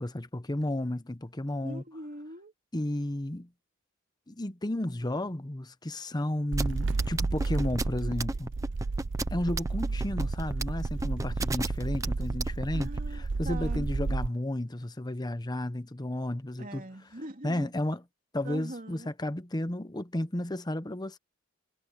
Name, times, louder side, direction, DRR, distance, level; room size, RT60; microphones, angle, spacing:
voice 1, 0.0-1.8 2.7-3.5 4.3-8.5 9.3-16.8 17.4-18.0 18.3-21.2, left 1 dB, 20° left, 0.9 m, -33 dB
voice 2, 1.6-2.5 12.7-13.9 16.6-17.7 18.4-19.1, right 1 dB, 40° right, 3.3 m, -42 dB
sound 1, 6.5-14.3, right 3 dB, 60° right, 0.6 m, -32 dB
sound 2, 6.6-13.0, right 2 dB, 15° right, 0.9 m, -32 dB
head